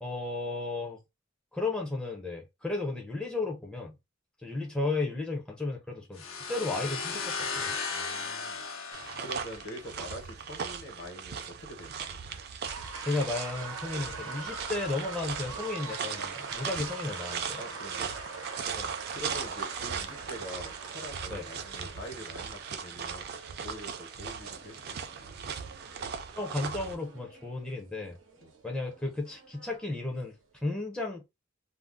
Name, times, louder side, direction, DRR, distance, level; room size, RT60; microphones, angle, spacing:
voice 1, 0.0-1.0 1.5-4.0 4.4-6.2 6.5-7.7 13.0-17.6 18.7-18.9 21.3-21.4 26.3-28.2 28.6-30.3 30.6-31.3, left 2 dB, 5° left, 0.5 m, -34 dB
sound 1, 6.2-9.9, left 5 dB, 85° left, 0.7 m, -36 dB
voice 2, 7.9-8.6 9.2-12.4 17.6-18.1 19.1-23.3 23.6-25.2 28.4-28.5, equal, 60° left, 1.0 m, -44 dB
sound 2, 8.9-27.0, right 6 dB, 50° right, 0.4 m, -38 dB
sound 3, 12.6-30.3, right 4 dB, 75° right, 0.8 m, -44 dB
2.5 x 2.0 x 3.5 m
head